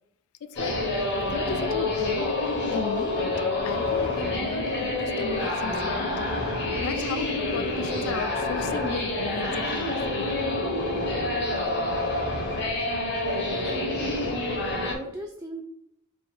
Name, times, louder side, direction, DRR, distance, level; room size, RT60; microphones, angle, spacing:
voice 1, 0.4-0.8 1.2-2.3 2.7-6.3 6.8-10.4, left 6 dB, 70° left, 0.3 m, -36 dB
sound 1, 0.6-14.9, left 2 dB, 50° left, 0.9 m, -27 dB
voice 2, 13.5-15.6, right 1 dB, 10° right, 0.3 m, -40 dB
3.7 x 2.5 x 4.4 m
head